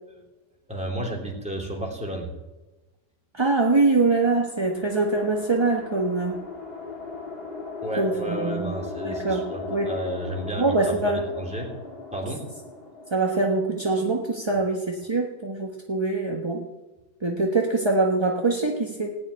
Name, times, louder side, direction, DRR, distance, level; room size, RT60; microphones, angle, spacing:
voice 1, 0.7-2.3 7.8-11.7 12.1-12.5, right 1 dB, 5° right, 0 dB, 3.0 m, -32 dB
voice 2, 3.3-6.4 8.0-8.7 9.0-9.9 10.6-11.2 13.1-16.7 17.2-19.1, right 3 dB, 20° right, 0 dB, 0.9 m, -24 dB
sound 1, 4.2-14.6, left 3 dB, 30° left, 2.0 m, -38 dB
17.5 x 7.0 x 9.7 m, 1.1 s
omnidirectional pair, 1.9 m